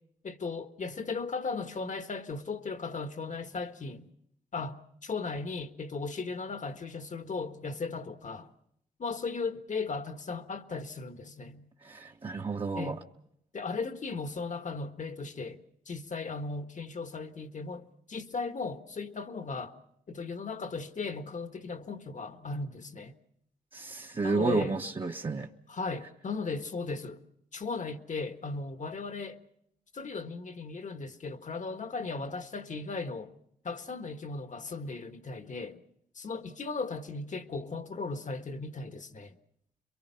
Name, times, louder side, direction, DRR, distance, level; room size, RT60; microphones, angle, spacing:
voice 1, 0.2-4.1 4.5-8.5 9.0-11.7 12.7-13.0 13.5-15.6 15.9-19.8 20.1-23.1 24.2-24.7 25.7-27.2 27.5-29.4 29.9-33.3 33.6-35.8 36.1-39.3, left 4 dB, 55° left, 1.5 m, -37 dB
voice 2, 11.8-13.0 23.7-25.5, right 3 dB, 35° right, 1.2 m, -31 dB
27.5 x 23.0 x 5.7 m
cardioid pair, 65°, 15 cm